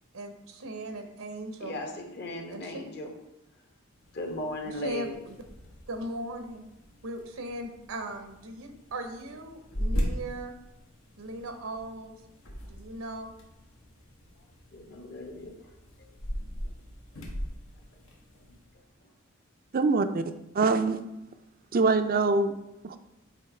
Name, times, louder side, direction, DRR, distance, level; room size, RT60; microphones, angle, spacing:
voice 1, 0.1-1.8 2.5-2.8 4.6-5.4 5.9-6.6 7.0-10.5 11.2-12.2 12.7-13.3, right 1 dB, 80° right, 6 dB, 0.8 m, -38 dB
voice 2, 1.6-3.1 4.1-5.2 14.7-15.5 16.0-16.1 17.1-17.2, left 1 dB, 50° left, 2 dB, 1.1 m, -37 dB
sound 1, 3.9-18.7, equal, 85° left, 1.3 m, -39 dB
voice 3, 19.7-20.2 20.5-21.0 21.7-22.5 22.8-23.0, right 3 dB, 45° right, 9 dB, 0.4 m, -24 dB
7.6 x 3.0 x 4.8 m, 0.89 s
head